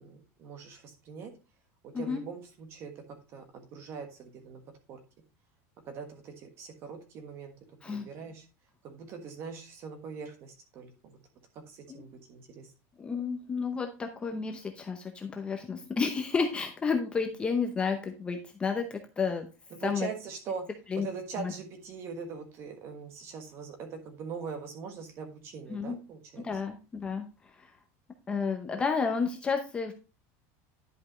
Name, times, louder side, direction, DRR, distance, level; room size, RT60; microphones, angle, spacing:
voice 1, 0.0-1.3 1.8-4.6 4.9-5.0 5.9-7.5 7.9-8.4 8.8-11.2 11.5-12.7 19.7-20.7 21.0-26.4, right 5 dB, 35° right, 6 dB, 1.5 m, -42 dB
voice 2, 13.0-19.5 19.8-20.1 20.9-21.1 21.4-21.5 25.7-26.0 26.4-27.3 27.5-27.7 28.3-29.9, left 5 dB, 15° left, 5 dB, 0.7 m, -31 dB
10.5 x 5.3 x 3.0 m, 0.31 s
cardioid pair, 180°, 8 cm